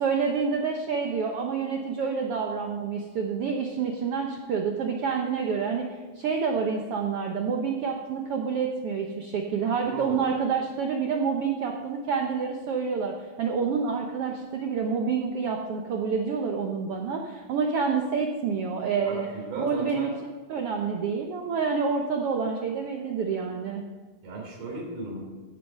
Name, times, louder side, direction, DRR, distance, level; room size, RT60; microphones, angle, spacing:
voice 1, 0.0-19.3 19.6-20.1 20.5-23.8, right 5 dB, 90° right, 2 dB, 1.3 m, -28 dB
voice 2, 9.8-10.2 19.0-20.1 24.2-25.2, right 3 dB, 50° right, -1 dB, 4.3 m, -35 dB
16.0 x 7.9 x 5.6 m, 1.4 s
omnidirectional pair, 3.9 m